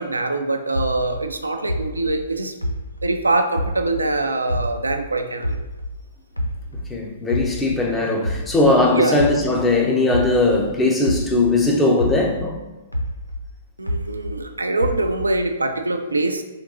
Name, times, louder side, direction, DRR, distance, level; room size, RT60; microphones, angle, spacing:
voice 1, 0.0-2.6 3.0-5.6 8.8-9.2 13.8-16.4, right 2 dB, 80° right, 0.3 m, -23 dB
sound 1, 0.7-4.1 4.5-6.9 7.3-11.6 12.0-14.4 14.8-15.5, equal, 90° left, 0.4 m, -28 dB
voice 2, 6.9-12.6, left 2 dB, 10° left, 0.5 m, -19 dB
3.7 x 2.5 x 2.6 m
figure-of-eight pair, 115°, 0 cm